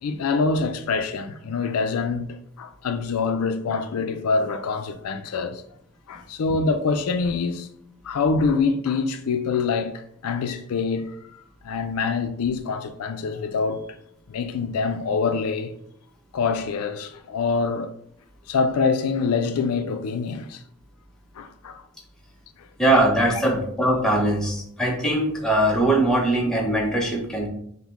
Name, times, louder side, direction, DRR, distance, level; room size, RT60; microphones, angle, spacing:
voice 1, 0.0-5.6 6.1-7.7 8.0-13.8 14.3-15.7 16.3-17.9 18.5-20.6 21.4-21.8 22.6-22.7, left 4 dB, 85° left, 0.4 m, -25 dB
voice 2, 22.8-27.5, right 1 dB, 5° left, 0.6 m, -21 dB
5.6 x 2.1 x 3.1 m
head